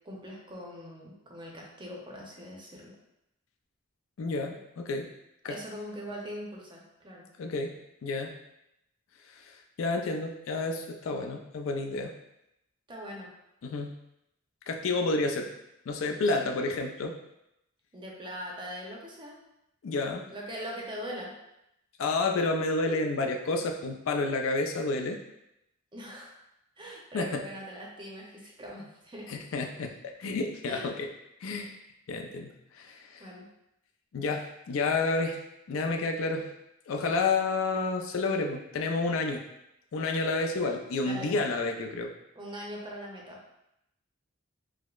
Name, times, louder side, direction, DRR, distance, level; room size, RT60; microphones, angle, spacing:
voice 1, 0.0-2.9 5.5-7.3 12.9-13.3 16.4-16.5 17.9-19.4 20.3-21.3 25.9-26.4 26.8-29.3 30.6-30.9 33.2-33.5 41.0-41.3 42.4-43.4, equal, 25° right, -2 dB, 0.6 m, -41 dB
voice 2, 4.2-5.1 5.4-5.6 7.4-7.7 8.0-8.3 9.2-12.2 13.6-14.0 14.7-15.5 15.9-17.2 19.8-20.2 22.0-25.2 27.1-27.4 29.3-31.1 31.4-31.7 32.1-33.3 34.1-35.4 35.7-36.5 36.9-39.4 39.9-42.1, left 3 dB, 70° left, 3 dB, 0.4 m, -30 dB
4.8 x 2.0 x 2.3 m, 0.84 s
head